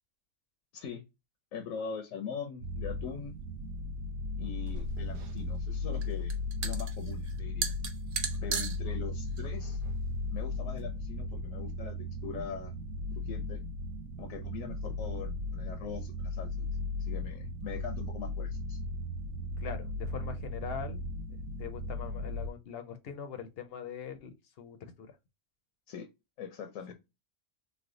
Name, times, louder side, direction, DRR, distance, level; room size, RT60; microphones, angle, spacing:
voice 1, 0.7-1.0 1.5-3.4 4.4-6.3 6.6-7.7 8.4-9.8 10.3-12.0 12.2-12.8 13.1-13.6 14.2-16.7 17.0-18.8 25.9-26.1 26.4-26.9, left 6 dB, 80° left, 1.0 m, -42 dB
sound 1, 2.6-22.5, left 2 dB, 80° right, 1.0 m, -36 dB
sound 2, 4.7-10.8, right 5 dB, 55° right, 0.6 m, -39 dB
voice 2, 19.6-21.0 21.6-25.2 26.9-27.0, left 7 dB, 60° left, 0.7 m, -42 dB
3.3 x 2.1 x 3.6 m
omnidirectional pair, 1.4 m